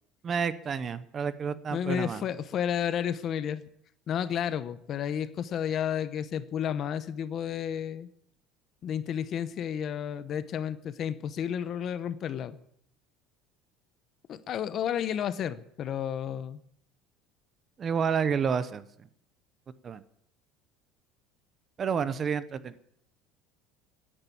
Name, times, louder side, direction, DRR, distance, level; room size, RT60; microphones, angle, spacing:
voice 1, 0.2-2.2 17.8-18.9 19.8-20.0 21.8-22.7, right 6 dB, 20° right, 15 dB, 0.7 m, -29 dB
voice 2, 1.7-3.6 4.1-8.1 8.8-12.6 14.3-16.6, left 9 dB, 30° left, 15 dB, 0.8 m, -31 dB
16.0 x 10.0 x 8.6 m, 0.70 s
cardioid pair, 180°, 0 cm